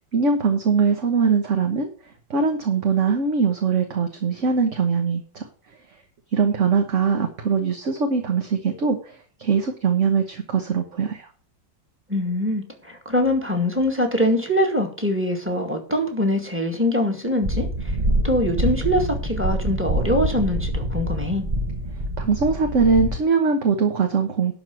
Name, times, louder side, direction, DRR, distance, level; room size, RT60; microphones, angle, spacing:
voice 1, 0.1-1.9 2.3-5.4 6.3-11.3 22.2-24.5, right 5 dB, 45° right, 5 dB, 1.4 m, -21 dB
voice 2, 12.1-18.0 18.2-21.5, left 1 dB, 5° right, 5 dB, 2.0 m, -23 dB
sound 1, 17.4-23.2, right 1 dB, 30° right, 0.8 m, -25 dB
12.0 x 4.8 x 7.5 m, 0.41 s
omnidirectional pair, 2.0 m